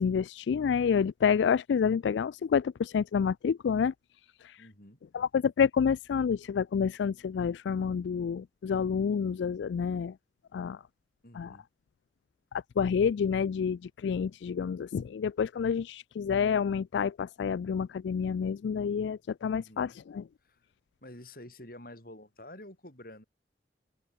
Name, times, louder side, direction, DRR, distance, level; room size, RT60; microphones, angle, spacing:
voice 1, 0.0-3.9 4.4-4.6 5.1-10.1 10.5-10.8 11.3-11.5 12.8-20.2, left 6 dB, 85° left, 0.3 m, -28 dB
voice 2, 4.6-5.0 11.2-11.7 19.5-20.0 20.4-20.6 21.0-23.2, left 1 dB, 55° left, 7.4 m, -49 dB
open air
head